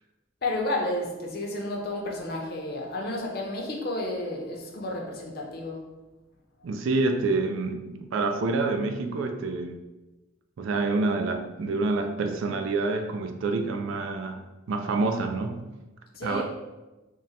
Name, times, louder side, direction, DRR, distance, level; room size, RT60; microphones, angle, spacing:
voice 1, 0.4-5.8 16.2-16.4, left 1 dB, 50° left, 0 dB, 0.6 m, -31 dB
voice 2, 6.6-9.8 10.6-15.6 16.2-16.4, right 3 dB, 75° right, 5 dB, 0.3 m, -27 dB
3.7 x 2.1 x 4.1 m, 1.1 s
head